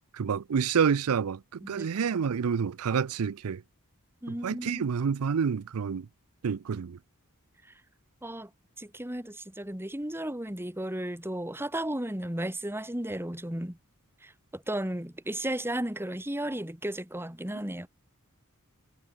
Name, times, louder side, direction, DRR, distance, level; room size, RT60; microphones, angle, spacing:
voice 1, 0.1-3.6 4.4-6.1 6.4-7.0, right 6 dB, 75° right, 0.5 m, -28 dB
voice 2, 4.2-4.9 8.2-8.5 8.8-13.8 14.2-17.9, right 1 dB, 10° right, 2.3 m, -34 dB
head